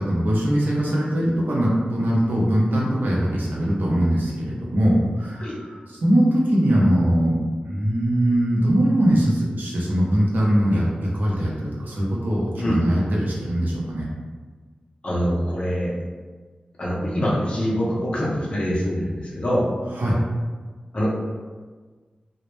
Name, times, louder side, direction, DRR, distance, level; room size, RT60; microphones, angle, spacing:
voice 1, 0.0-7.3 7.6-14.1 20.0-20.2, equal, 75° right, -4 dB, 0.6 m, -21 dB
voice 2, 15.0-15.9 16.8-19.7 20.9-21.1, equal, 35° left, -7 dB, 0.5 m, -24 dB
2.1 x 2.0 x 3.0 m, 1.4 s
wide cardioid pair, 105°, 3 cm